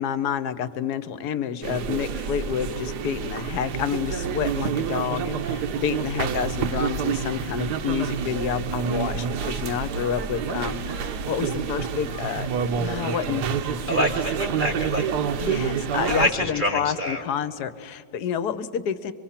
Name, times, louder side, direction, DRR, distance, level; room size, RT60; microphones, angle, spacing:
voice 1, 0.0-12.5 12.8-13.8 15.4-19.1, left 8 dB, 65° left, 13 dB, 1.2 m, -29 dB
sound 1, 1.6-16.3, right 6 dB, 70° right, 1.3 m, -28 dB
voice 2, 13.9-15.1 15.3-15.5 15.9-17.2, left 1 dB, 35° right, 3 dB, 0.9 m, -26 dB
25.0 x 24.0 x 5.8 m, 2.3 s
omnidirectional pair, 2.0 m